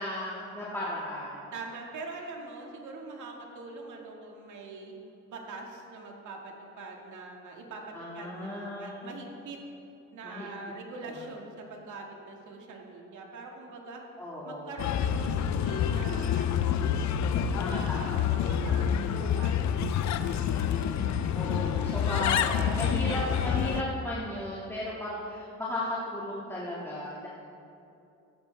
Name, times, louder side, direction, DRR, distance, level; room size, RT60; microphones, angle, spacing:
voice 1, 0.0-1.4 7.9-9.1 10.2-10.5 14.2-14.9 17.5-18.5 21.3-27.3, left 1 dB, 10° left, -8 dB, 2.1 m, -35 dB
voice 2, 1.5-4.9 5.3-9.6 10.1-14.0 14.4-16.5 16.8-17.9 18.2-20.1, right 3 dB, 75° right, 0 dB, 2.1 m, -43 dB
Bird, 14.8-23.8, left 8 dB, 70° left, 0.7 m, -28 dB
14.5 x 11.5 x 3.5 m, 2.7 s
cardioid pair, 90°, 30 cm